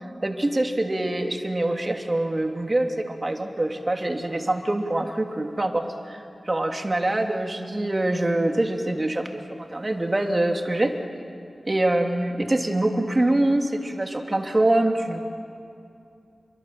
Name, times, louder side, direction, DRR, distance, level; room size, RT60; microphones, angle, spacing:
voice 1, 0.2-10.9 11.6-15.2, right 1 dB, 35° right, 3 dB, 2.8 m, -24 dB
29.5 x 23.5 x 7.7 m, 2.5 s
cardioid pair, 55°, 0 cm